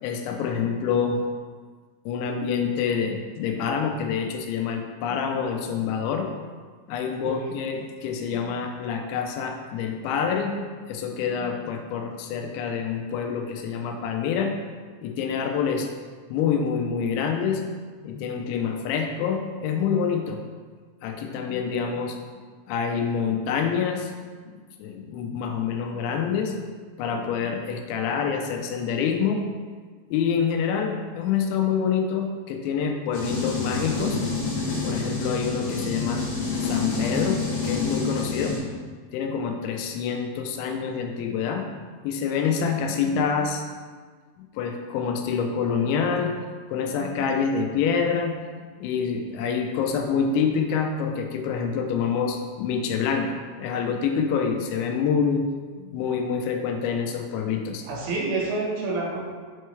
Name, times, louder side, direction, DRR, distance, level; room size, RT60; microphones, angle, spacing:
voice 1, 0.0-1.2 2.1-6.3 6.9-10.5 10.9-14.6 15.0-15.9 16.3-17.6 18.0-20.4 21.0-22.2 22.7-24.1 24.8-26.5 27.0-29.4 30.1-34.2 34.8-36.2 36.6-38.7 39.1-41.7 42.0-43.7 44.4-46.4 46.7-55.5 55.8-57.8, left 6 dB, 90° left, 3 dB, 3.0 m, -26 dB
sound 1, 33.1-38.6, left 4 dB, 65° left, 3.0 m, -27 dB
voice 2, 57.8-59.2, right 3 dB, 80° right, -4 dB, 3.6 m, -28 dB
7.6 x 4.5 x 3.2 m, 1.5 s
omnidirectional pair, 5.1 m